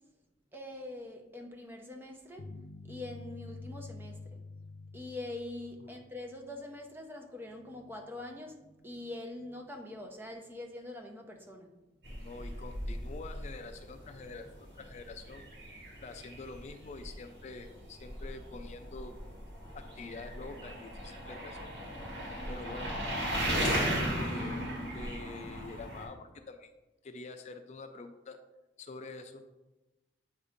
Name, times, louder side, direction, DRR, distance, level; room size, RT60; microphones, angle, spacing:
voice 1, 0.5-2.4 2.8-4.4 4.9-11.7, left 2 dB, 10° right, 3 dB, 0.7 m, -44 dB
sound 1, 2.4-6.6, left 3 dB, 85° left, 0.6 m, -48 dB
voice 2, 12.0-15.4 16.0-19.1 19.7-21.6 22.5-23.0 24.2-24.7 24.9-26.7 27.0-28.4 28.8-29.4, left 3 dB, 40° left, 6 dB, 0.4 m, -46 dB
sound 2, 12.0-26.0, equal, 75° right, 2.3 m, -37 dB
7.9 x 2.7 x 5.0 m, 1.1 s
head